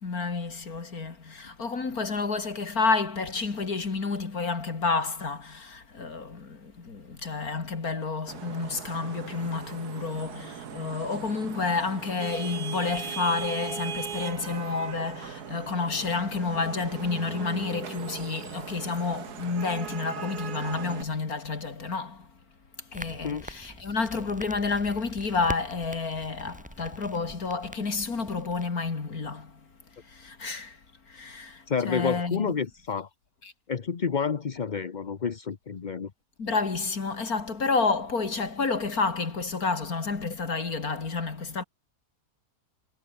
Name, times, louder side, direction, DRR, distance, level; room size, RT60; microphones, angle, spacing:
voice 1, 0.0-22.3 22.8-29.7 30.0-32.5 33.4-33.5 36.4-41.6, left 4 dB, 60° left, 3.1 m, -30 dB
Vehicle horn car horn honking / Traffic noise roadway noise, 8.3-21.0, right 8 dB, 70° right, 1.8 m, -39 dB
Crackle, 22.9-28.7, equal, 5° right, 5.2 m, -43 dB
voice 2, 31.7-33.1 33.7-36.1, left 6 dB, 35° left, 0.9 m, -29 dB
omnidirectional pair, 1.7 m